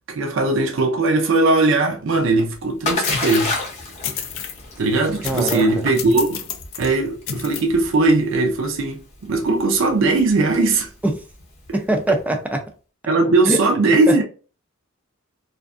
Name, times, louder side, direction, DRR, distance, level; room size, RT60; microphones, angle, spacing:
voice 1, 0.1-3.5 4.8-6.5 6.8-10.9 11.7-11.8 12.1-12.2 13.1-14.2, right 3 dB, 65° right, 0.5 m, -19 dB
Splash splatter, 2.1-12.0, left 3 dB, 30° left, 0.7 m, -31 dB
sound 1, 3.0-3.5 4.0-4.6 5.2-5.7 6.0-6.9 7.3-7.6, left 7 dB, 65° left, 0.4 m, -30 dB
voice 2, 5.2-5.8 11.0-11.2 11.7-12.6 13.5-13.6 14.1-14.2, right 1 dB, 5° right, 0.3 m, -22 dB
2.4 x 2.3 x 2.4 m
head